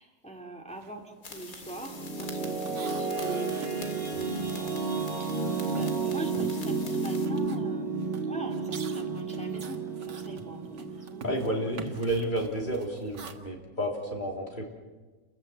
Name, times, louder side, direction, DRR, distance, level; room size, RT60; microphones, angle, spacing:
voice 1, 0.0-2.6 2.9-4.8 5.7-11.4, right 2 dB, 5° left, 1 dB, 2.3 m, -42 dB
sound 1, 0.7-1.0 1.3-5.3 5.6-13.3, right 5 dB, 90° right, 2.2 m, -47 dB
sound 2, 1.2-7.3, left 4 dB, 55° left, 2.5 m, -46 dB
sound 3, 1.4-12.4, right 4 dB, 35° right, 4.1 m, -32 dB
voice 2, 11.2-14.7, right 1 dB, 25° left, 0 dB, 3.7 m, -31 dB
29.5 x 15.0 x 8.0 m, 1.3 s
omnidirectional pair, 1.8 m